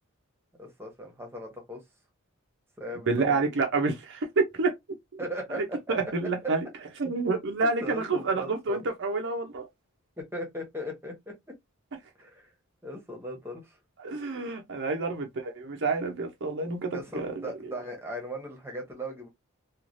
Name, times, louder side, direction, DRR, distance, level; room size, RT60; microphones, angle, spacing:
voice 1, 0.6-1.8 2.8-3.4 5.2-5.6 7.8-8.9 10.2-11.3 12.2-12.4 12.8-13.8 16.9-19.3, equal, 10° right, 1.0 m, -38 dB
voice 2, 3.1-4.7 5.5-6.6 7.0-9.7 14.0-17.5, right 3 dB, 60° right, 0.6 m, -28 dB
3.1 x 2.4 x 2.5 m
head